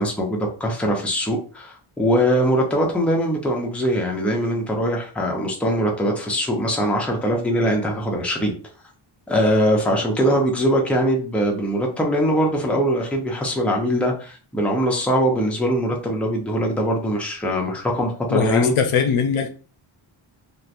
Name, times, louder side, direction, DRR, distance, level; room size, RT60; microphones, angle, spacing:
voice 1, 0.0-8.5 9.3-18.7, equal, 5° left, 0.6 m, -22 dB
voice 2, 18.3-19.5, left 6 dB, 80° left, 0.6 m, -20 dB
3.0 x 2.1 x 2.5 m
wide cardioid pair, 90°, 50 cm